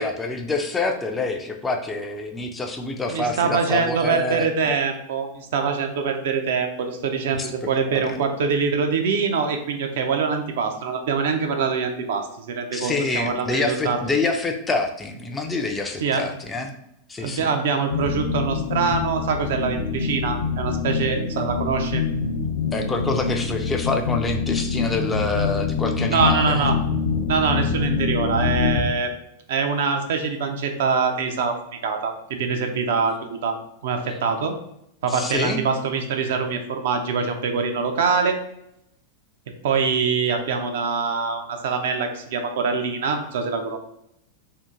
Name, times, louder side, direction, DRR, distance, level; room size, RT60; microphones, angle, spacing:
voice 1, 0.0-4.7 7.3-8.2 12.7-16.7 17.1-17.5 22.7-26.6 35.1-35.6, left 3 dB, 15° left, 3 dB, 0.4 m, -27 dB
voice 2, 3.1-14.0 16.0-16.2 17.2-22.0 26.1-26.8 27.3-29.1 29.5-31.6 31.8-33.6 33.8-34.5 35.0-38.4 39.6-43.8, right 5 dB, 55° right, 5 dB, 0.5 m, -24 dB
sound 1, 17.9-28.8, left 5 dB, 60° left, 0.5 m, -25 dB
2.8 x 2.4 x 3.5 m, 0.77 s
figure-of-eight pair, 90°, 0 cm